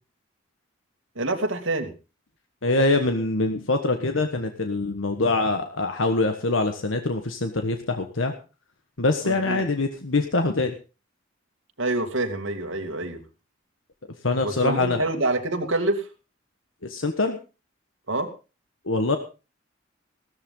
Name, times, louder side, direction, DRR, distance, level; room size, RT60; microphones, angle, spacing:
voice 1, 1.2-1.9 9.2-9.6 11.8-13.2 14.4-16.1 18.1-18.3, right 2 dB, 80° right, 4 dB, 2.5 m, -26 dB
voice 2, 2.6-8.3 9.0-10.7 14.2-15.0 16.8-17.4 18.8-19.2, left 2 dB, 85° left, 6 dB, 1.4 m, -24 dB
16.5 x 13.5 x 3.8 m, 0.32 s
head